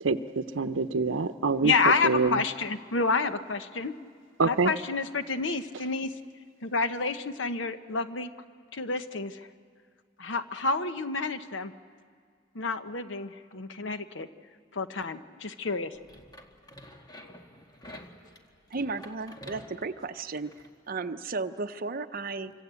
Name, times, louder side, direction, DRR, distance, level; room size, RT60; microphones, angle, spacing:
voice 1, 0.0-1.7 2.0-2.4 4.4-4.7, right 4 dB, 85° right, 10 dB, 0.7 m, -26 dB
voice 2, 1.6-3.9 4.4-6.1 6.6-8.3 8.7-9.5 10.2-11.7 12.5-14.3 14.7-15.9, left 4 dB, 70° left, 10 dB, 1.0 m, -29 dB
sound 1, 15.9-20.7, left 1 dB, 20° left, 1.8 m, -49 dB
voice 3, 18.7-20.5 20.9-22.5, right 3 dB, 50° right, 9 dB, 0.8 m, -34 dB
26.0 x 25.5 x 8.3 m, 2.1 s
head